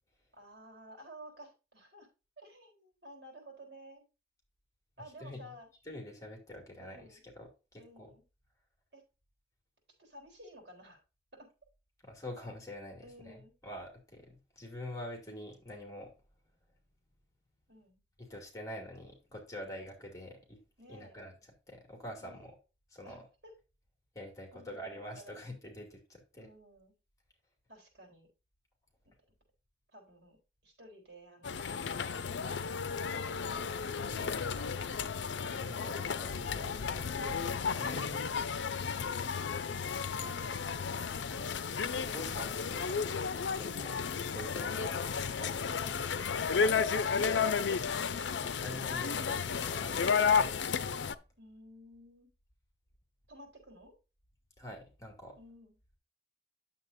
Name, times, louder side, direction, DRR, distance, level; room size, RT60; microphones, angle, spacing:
voice 1, 0.3-2.1 2.4-4.1 5.0-5.7 6.8-7.2 7.8-8.2 8.9-9.0 10.0-11.0 11.3-11.5 13.0-13.5 17.7-18.0 20.8-21.2 22.2-22.5 23.0-23.5 24.5-25.4 26.4-27.0 27.7-28.3 29.1-29.2 29.9-30.4 30.6-33.8 34.4-34.7 35.0-36.1 36.4-37.5 44.5-44.8 46.9-47.0 47.3-47.9 48.2-48.5 51.4-52.3 53.3-53.9 55.4-55.8, right 1 dB, 65° right, 1 dB, 3.7 m, -54 dB
voice 2, 5.9-8.1 12.0-16.1 18.2-20.6 20.9-21.3 21.7-22.5 22.9-23.2 24.1-26.5 34.1-34.6 35.6-36.9 37.8-38.3 40.9-43.3 43.6-44.0 44.3-45.1 45.4-45.7 46.5-47.1 48.4-50.9 54.6-55.4, left 1 dB, 20° left, 2 dB, 2.5 m, -46 dB
sound 1, 31.4-51.1, left 6 dB, 85° left, 0.5 m, -33 dB
9.6 x 7.5 x 2.6 m, 0.29 s
head